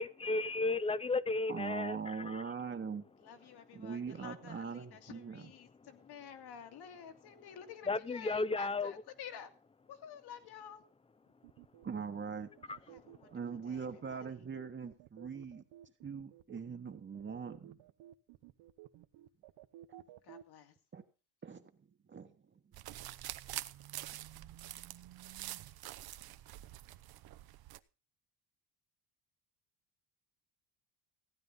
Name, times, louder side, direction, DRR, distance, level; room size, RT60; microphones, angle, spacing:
voice 1, 0.0-2.4 7.9-8.9 12.7-12.8, left 3 dB, 15° left, 0.6 m, -34 dB
voice 2, 1.5-3.0 3.7-5.4 11.8-12.5 13.3-15.6 16.0-17.8 20.9-21.0 21.4-21.7 22.1-22.3, right 6 dB, 25° right, 1.3 m, -41 dB
voice 3, 3.2-9.5 9.9-10.8 12.9-13.3 13.6-14.3 20.2-20.7, left 8 dB, 60° left, 2.4 m, -51 dB
sound 1, 11.4-20.4, right 13 dB, 75° right, 1.2 m, -55 dB
sound 2, 22.7-27.8, right 14 dB, 55° right, 0.9 m, -46 dB
16.0 x 9.5 x 5.3 m
cardioid pair, 100°, 44 cm